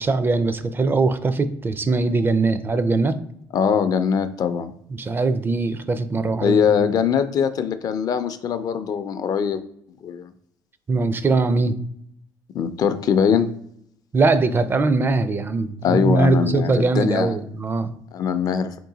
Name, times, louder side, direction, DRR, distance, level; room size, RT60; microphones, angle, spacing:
voice 1, 0.0-3.2 4.9-6.6 10.9-11.8 14.1-17.9, right 3 dB, 25° right, 11 dB, 0.4 m, -21 dB
voice 2, 3.5-4.7 6.4-9.6 10.0-10.3 12.5-13.5 15.8-17.4 18.1-18.8, left 7 dB, 50° left, 11 dB, 0.4 m, -21 dB
3.7 x 2.6 x 3.9 m, 0.70 s
supercardioid pair, 80°, 8 cm